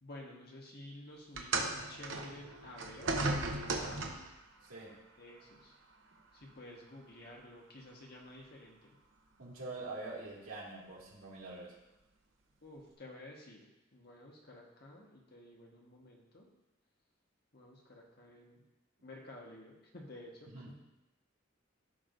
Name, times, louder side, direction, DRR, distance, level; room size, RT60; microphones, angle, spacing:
voice 1, 0.0-4.3 5.2-5.7 6.3-9.0 12.6-16.5 17.5-18.6 19.0-20.7, left 1 dB, 50° left, -1 dB, 1.4 m, -52 dB
sound 1, 1.3-4.4 5.4-5.6 6.4-6.5, right 2 dB, 65° right, 0.8 m, -36 dB
voice 2, 4.6-5.0 9.4-11.7 20.5-20.7, right 2 dB, 90° right, -5 dB, 2.4 m, -45 dB
14.0 x 4.8 x 2.6 m, 0.96 s
head